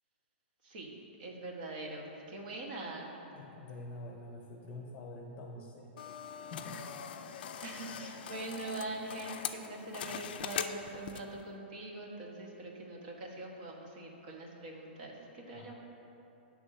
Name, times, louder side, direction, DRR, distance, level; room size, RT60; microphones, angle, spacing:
voice 1, 1.2-3.1 7.6-15.7, right 2 dB, 50° right, 0 dB, 1.2 m, -43 dB
voice 2, 3.3-5.9 6.5-7.0 15.5-15.7, left 2 dB, 20° left, -3 dB, 1.0 m, -46 dB
sound 1, 6.0-11.4, left 8 dB, 55° left, 0.4 m, -42 dB
8.8 x 3.4 x 6.4 m, 3.0 s
hypercardioid pair, 160°, 6 cm